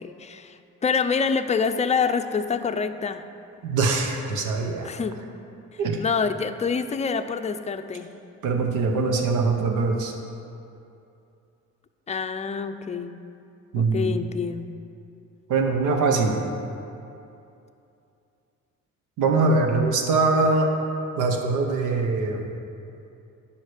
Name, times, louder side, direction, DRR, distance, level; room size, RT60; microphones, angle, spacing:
voice 1, 0.0-3.2 4.8-5.2 5.7-8.1 12.1-13.2 13.7-14.7, left 5 dB, 25° left, 8 dB, 0.5 m, -26 dB
voice 2, 3.6-4.9 5.8-6.0 8.4-10.1 13.7-14.1 15.5-16.4 19.2-20.7 21.2-22.5, right 3 dB, 85° right, 3 dB, 1.0 m, -22 dB
10.5 x 5.7 x 4.9 m, 2.7 s
cardioid pair, 90°, 30 cm